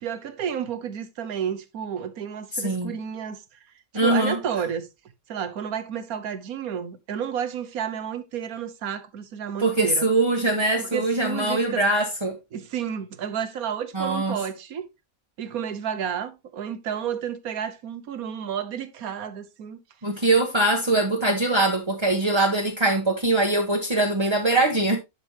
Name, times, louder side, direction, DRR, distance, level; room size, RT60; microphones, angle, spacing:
voice 1, 0.0-3.6 4.0-4.9 5.3-10.1 10.8-11.8 12.5-14.8 15.4-19.8, right 8 dB, 80° right, 1.4 m, -31 dB
voice 2, 2.5-2.9 3.9-4.4 9.6-12.3 13.9-14.3 20.0-25.0, right 2 dB, 20° right, 1.1 m, -22 dB
10.5 x 5.3 x 2.9 m
omnidirectional pair, 1.5 m